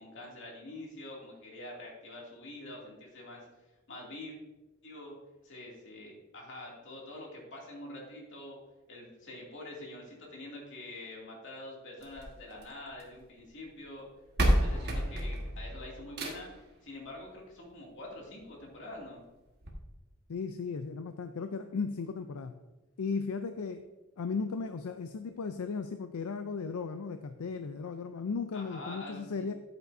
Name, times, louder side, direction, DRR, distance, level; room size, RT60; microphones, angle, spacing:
voice 1, 0.0-3.5 3.9-4.4 4.8-5.1 5.4-8.6 8.9-14.1 14.6-16.5 16.8-19.2 28.5-29.5, left 1 dB, 60° left, -2 dB, 2.6 m, -46 dB
sound 1, 12.0-13.2 14.0-14.1 14.4-16.7 18.0-18.1 18.6-18.7 18.9-19.0 19.6-19.7, equal, 50° right, 1.5 m, -30 dB
voice 2, 20.3-22.6 23.0-23.8 24.2-29.5, left 5 dB, 85° left, 8 dB, 0.5 m, -36 dB
10.5 x 8.8 x 2.7 m, 1.1 s
head